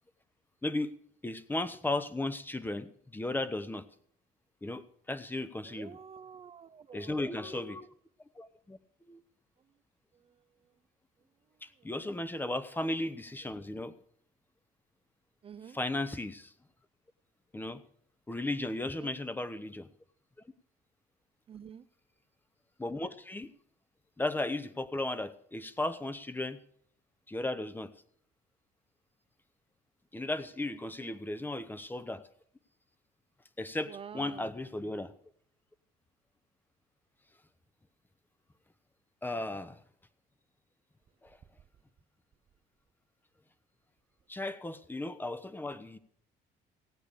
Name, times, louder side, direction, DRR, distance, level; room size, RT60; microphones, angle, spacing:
voice 1, 0.6-0.9 1.2-3.9 4.6-6.0 6.9-7.9 8.4-8.8 9.1-9.2 11.6-13.9 15.7-16.5 17.5-17.8 18.3-19.9 22.8-23.5 24.2-26.6 27.3-27.9 30.1-32.2 33.6-35.1 39.2-39.8 41.2-41.4 44.3-46.0, left 2 dB, 10° left, 14 dB, 0.8 m, -35 dB
voice 2, 5.6-7.8 10.2-10.3 11.8-11.9 15.4-15.8 18.6-18.7 19.0-19.1 21.5-21.8 31.0-31.2 33.8-34.5, right 7 dB, 35° right, 13 dB, 0.5 m, -49 dB
16.0 x 8.7 x 6.7 m, 0.63 s
cardioid pair, 110°, 17 cm